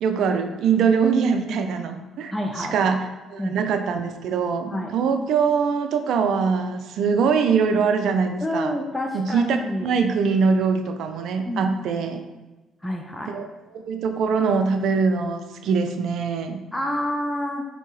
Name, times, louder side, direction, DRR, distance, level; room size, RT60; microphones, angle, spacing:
voice 1, 0.0-3.0 3.3-8.7 9.1-12.2 13.3-16.6, right 5 dB, 70° right, 7 dB, 0.4 m, -23 dB
voice 2, 2.3-2.9 3.4-3.6 4.7-4.9 8.4-9.9 11.4-11.7 12.8-13.3 16.7-17.6, left 1 dB, 10° left, 2 dB, 0.4 m, -28 dB
4.4 x 2.8 x 3.1 m, 1.1 s
supercardioid pair, 65°, 0 cm